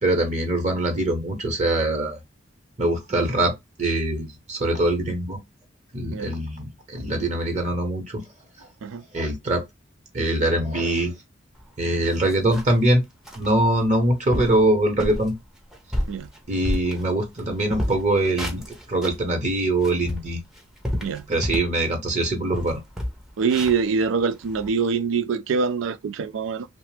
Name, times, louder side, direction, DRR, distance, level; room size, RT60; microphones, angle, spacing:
voice 1, 0.0-2.2 2.8-3.5 3.8-5.4 5.9-8.2 8.6-8.7 9.1-9.6 10.1-11.1 11.8-13.0 13.4-15.3 16.5-18.6 18.9-20.4 21.3-22.8, right 1 dB, 40° right, 0.8 m, -23 dB
sound 1, 11.6-11.7 12.0-12.8 13.3-13.5 13.9-14.0 14.3-14.6 15.0-15.3 15.7-17.4 17.7-19.2 19.7-21.8 22.2-22.3 22.5-24.7, equal, ahead, 0.5 m, -30 dB
voice 2, 23.4-26.7, right 5 dB, 75° right, 0.4 m, -24 dB
2.8 x 2.0 x 3.1 m
head